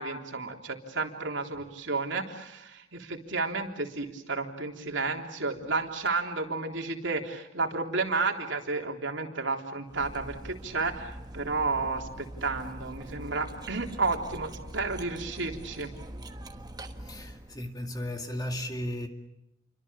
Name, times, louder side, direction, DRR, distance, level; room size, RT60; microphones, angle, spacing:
voice 1, 0.0-15.9, right 3 dB, 65° right, 3.6 m, -32 dB
Cutlery silverware, 9.9-17.6, right 1 dB, 20° right, 1.3 m, -43 dB
voice 2, 17.0-19.1, left 1 dB, 20° left, 2.1 m, -35 dB
29.5 x 25.0 x 7.1 m
head